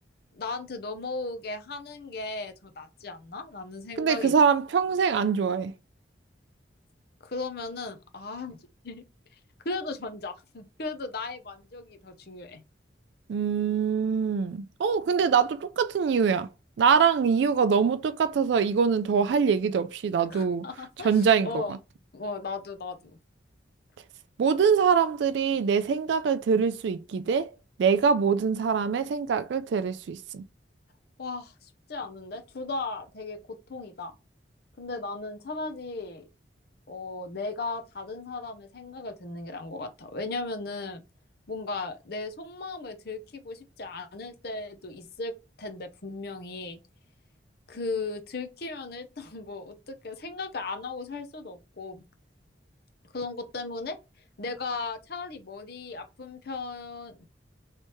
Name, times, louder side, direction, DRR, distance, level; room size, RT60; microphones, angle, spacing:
voice 1, 0.3-4.3 7.2-8.6 8.8-9.0 9.6-12.6 20.3-21.8 22.1-23.2 31.2-34.2 34.8-36.3 36.9-41.0 41.5-46.8 47.7-52.0 53.1-54.0 54.4-57.2, left 3 dB, 55° left, 0.7 m, -36 dB
voice 2, 4.0-5.7 13.3-16.5 16.8-20.6 21.0-21.8 24.4-27.5 27.8-30.4, right 6 dB, 70° right, 0.3 m, -24 dB
3.3 x 3.0 x 4.3 m
head